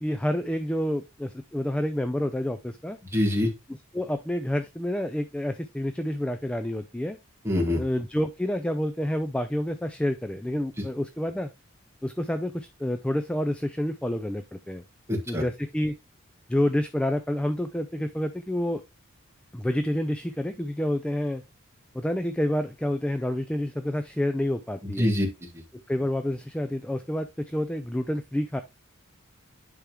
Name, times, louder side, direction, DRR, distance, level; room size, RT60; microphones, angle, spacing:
voice 1, 0.0-3.0 3.9-7.2 7.8-11.5 12.0-14.8 15.3-16.0 16.5-18.8 19.5-21.4 21.9-25.1 25.7-28.6, left 1 dB, 5° left, 8 dB, 0.4 m, -28 dB
voice 2, 3.1-3.5 7.4-7.8 15.1-15.4 25.0-25.5, left 1 dB, 10° right, 1 dB, 1.8 m, -24 dB
10.0 x 3.6 x 3.0 m, 0.23 s
head